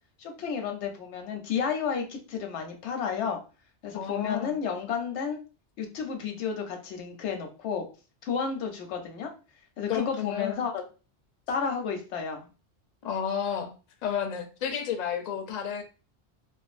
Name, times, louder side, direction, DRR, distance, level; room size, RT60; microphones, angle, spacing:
voice 1, 0.2-3.4 3.8-5.4 5.8-7.8 8.2-9.3 9.8-10.8 11.5-12.5, left 6 dB, 85° left, 4 dB, 0.9 m, -31 dB
voice 2, 3.9-4.5 9.9-10.6 13.0-13.7 14.0-15.8, left 8 dB, 55° left, 5 dB, 0.5 m, -31 dB
2.5 x 2.3 x 2.4 m, 0.33 s
omnidirectional pair, 1.1 m